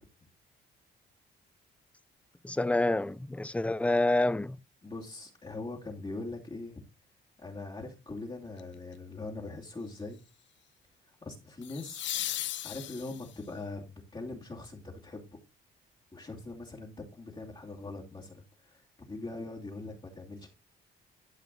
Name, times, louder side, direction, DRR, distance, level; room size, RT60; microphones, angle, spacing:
voice 1, 2.4-4.6, left 2 dB, 5° left, 0.5 m, -27 dB
voice 2, 4.8-6.8 7.4-10.2 11.0-12.1 12.6-15.4 16.1-18.8 19.1-20.5, left 2 dB, 25° left, 2.6 m, -42 dB
sound 1, 8.6-8.9 11.6-13.5 16.4-16.5, left 13 dB, 65° left, 0.6 m, -37 dB
12.5 x 5.8 x 3.9 m
cardioid pair, 90°, 20 cm